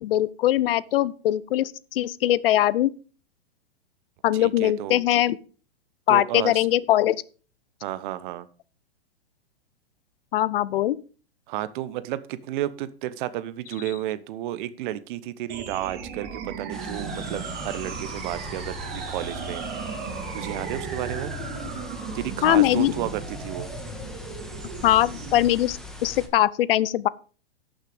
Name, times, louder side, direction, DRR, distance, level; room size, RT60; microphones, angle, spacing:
voice 1, 0.0-2.9 4.2-5.4 6.1-7.2 10.3-11.0 22.4-22.9 24.8-27.1, left 13 dB, 65° left, 0.6 m, -21 dB
voice 2, 4.3-5.0 6.1-6.7 7.8-8.5 11.5-19.8 20.3-21.3 22.1-23.7, right 13 dB, 50° right, 1.0 m, -32 dB
sound 1, 15.5-25.5, right 5 dB, 30° right, 2.7 m, -36 dB
sound 2, 16.7-26.3, left 1 dB, ahead, 1.5 m, -39 dB
11.5 x 6.5 x 5.1 m
hypercardioid pair, 120°, 31 cm